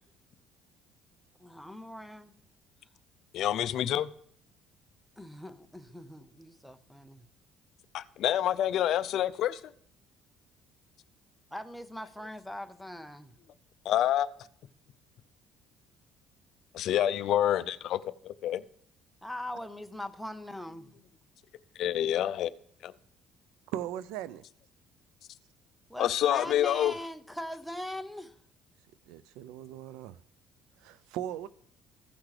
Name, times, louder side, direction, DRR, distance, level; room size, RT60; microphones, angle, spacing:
voice 1, 1.4-2.3 5.2-7.3 11.5-13.3 19.2-21.0 25.9-28.3, left 1 dB, ahead, 0.6 m, -41 dB
voice 2, 3.3-4.1 7.9-9.6 13.9-14.3 16.7-18.6 21.8-22.5 22.8-22.9 26.0-26.9, left 11 dB, 60° left, 0.4 m, -27 dB
voice 3, 23.7-24.4 29.1-30.2 30.8-31.5, right 11 dB, 90° right, 0.4 m, -38 dB
15.0 x 5.9 x 3.2 m
cardioid pair, 125°, 0 cm